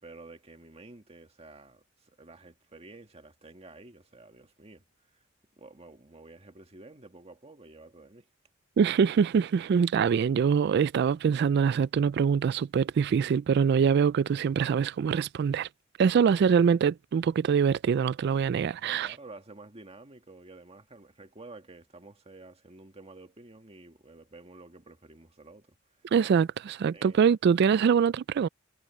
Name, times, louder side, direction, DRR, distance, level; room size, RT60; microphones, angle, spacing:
voice 1, 0.0-4.8 5.1-5.2 5.5-8.3 18.8-25.8 26.9-27.3, right 2 dB, 30° right, 1.8 m, -50 dB
voice 2, 8.8-15.7 16.0-19.1 26.1-28.5, right 6 dB, 55° right, 0.3 m, -24 dB
head